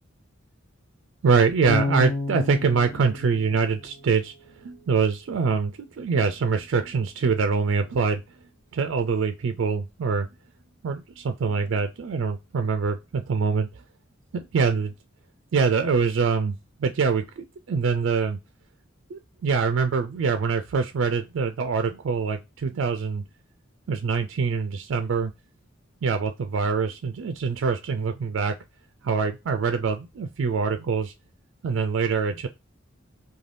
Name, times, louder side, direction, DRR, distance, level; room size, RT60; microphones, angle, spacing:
voice 1, 1.2-4.3 4.6-8.2 8.7-10.3 10.8-13.7 14.3-14.9 15.5-18.4 19.1-23.2 23.9-25.3 26.0-28.5 29.0-31.1 31.6-32.5, right 5 dB, 65° right, 0.4 m, -24 dB
Bass guitar, 1.7-4.7, left 2 dB, 45° left, 1.1 m, -31 dB
3.3 x 2.3 x 2.5 m
head